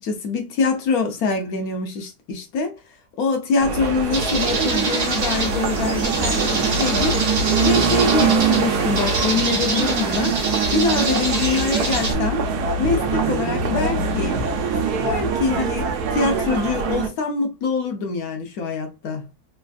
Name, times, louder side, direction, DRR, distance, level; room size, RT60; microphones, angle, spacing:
voice 1, 0.0-2.8 3.2-7.2 7.6-10.4 10.7-12.4 12.8-14.4 15.0-19.3, left 4 dB, 70° left, 1.0 m, -24 dB
sound 1, 3.6-17.1, right 5 dB, 75° right, 1.1 m, -23 dB
sound 2, 4.1-12.1, right 3 dB, 55° right, 0.4 m, -26 dB
3.3 x 2.4 x 2.3 m
omnidirectional pair, 1.8 m